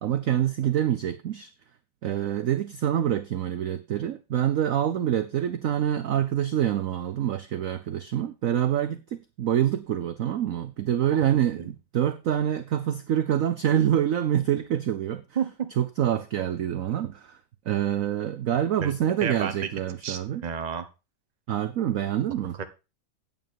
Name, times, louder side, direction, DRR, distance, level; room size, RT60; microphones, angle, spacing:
voice 1, 0.0-1.5 2.0-15.2 15.8-17.4 17.7-20.4 21.5-22.6, right 10 dB, 65° right, 0.8 m, -26 dB
voice 2, 15.3-15.7 18.8-18.9 19.2-19.5 20.0-20.9 22.5-22.6, right 7 dB, 30° right, 0.8 m, -31 dB
9.0 x 8.3 x 4.5 m
omnidirectional pair, 2.1 m